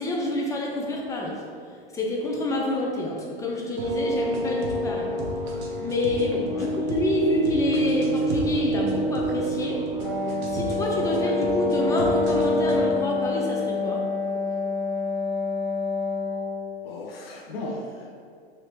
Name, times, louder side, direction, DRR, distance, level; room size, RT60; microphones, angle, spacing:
voice 1, 0.0-1.3 1.9-5.1 5.8-9.8 10.5-14.0, left 1 dB, 10° left, -2 dB, 0.4 m, -27 dB
sound 1, 3.8-12.8, right 1 dB, 70° right, 0.7 m, -27 dB
Wind instrument woodwind instrument, 10.0-16.8, left 4 dB, 30° left, 0.7 m, -28 dB
voice 2, 16.8-18.1, left 1 dB, 70° left, -1 dB, 0.6 m, -36 dB
3.2 x 2.8 x 2.9 m, 2.2 s
hypercardioid pair, 110°, 30 cm